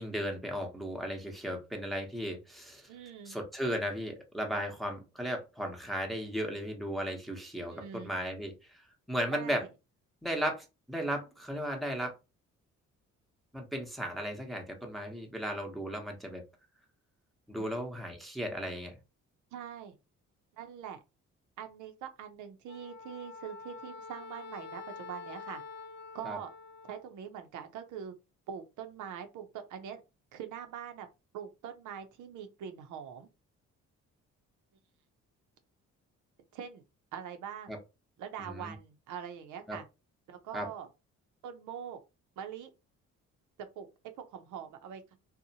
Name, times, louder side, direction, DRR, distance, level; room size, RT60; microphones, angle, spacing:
voice 1, 0.0-2.9 3.2-8.8 9.1-9.7 10.2-12.1 13.5-16.4 17.5-19.0 26.2-26.4 37.7-37.8 38.4-38.7 39.7-39.8 40.5-40.7, equal, ahead, 0.7 m, -35 dB
voice 2, 2.9-3.4 7.7-8.1 9.3-9.7 17.6-17.7 19.5-20.0 20.6-21.0 21.6-25.6 26.1-26.5 26.8-28.1 28.5-30.0 30.3-31.1 31.3-33.3 36.5-36.8 37.1-37.7 38.2-39.8 40.3-40.9 41.4-42.0 42.4-42.7 43.6-43.9 44.3-45.0, right 8 dB, 80° right, 0.6 m, -43 dB
Wind instrument woodwind instrument, 22.7-27.1, left 4 dB, 55° left, 0.8 m, -46 dB
2.7 x 2.1 x 2.7 m
cardioid pair, 90°, 30 cm